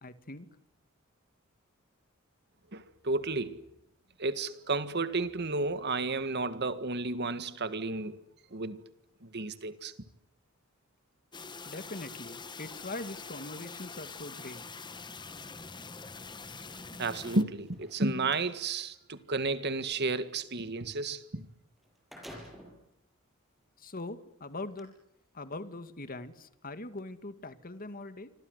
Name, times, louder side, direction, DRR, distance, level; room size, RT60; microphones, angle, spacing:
voice 1, 0.0-0.5 11.7-14.6 23.8-24.9 25.3-28.3, left 2 dB, 45° left, 2.0 m, -42 dB
voice 2, 2.7-3.7 4.2-8.2 8.5-8.8 9.2-9.9 17.0-21.5, right 3 dB, 50° right, 1.9 m, -32 dB
sound 1, 11.3-17.4, left 4 dB, 20° left, 1.3 m, -45 dB
sound 2, 17.6-18.5 21.4-21.5 21.8-22.9 23.6-23.7 24.6-24.8, equal, ahead, 7.4 m, -49 dB
28.5 x 25.5 x 8.1 m
head